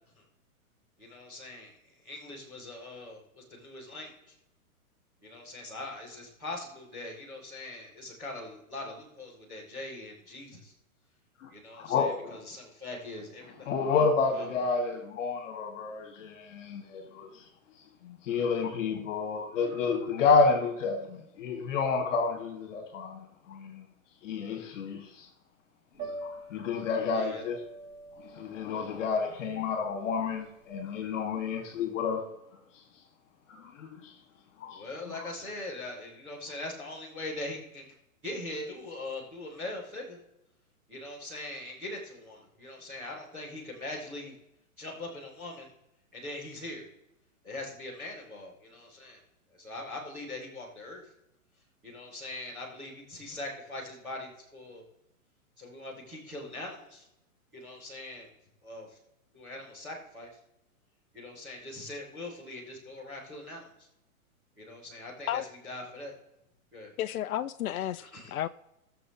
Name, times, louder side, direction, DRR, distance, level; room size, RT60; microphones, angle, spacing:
voice 1, 1.0-4.3 5.2-10.7 11.5-13.7 14.3-14.5 27.1-27.4 34.7-37.9 38.2-40.2 40.9-44.3 44.8-45.7 46.1-46.8 47.4-49.2 49.5-51.1 51.8-54.8 55.6-57.1 57.5-58.3 58.6-59.0 59.3-60.4 61.1-63.9 64.6-66.2 66.7-66.9 68.0-68.4, left 2 dB, 5° right, 0.3 m, -42 dB
voice 2, 11.4-12.4 13.7-17.3 18.0-23.9 24.2-25.0 26.2-27.6 28.3-32.3 33.6-34.1 34.6-34.8, left 4 dB, 60° left, 1.9 m, -30 dB
Piano, 25.9-31.9, right 2 dB, 20° right, 3.9 m, -46 dB
voice 3, 67.0-68.0 68.3-68.5, left 12 dB, 75° left, 0.6 m, -31 dB
18.5 x 6.8 x 3.0 m
hypercardioid pair, 145°, 44 cm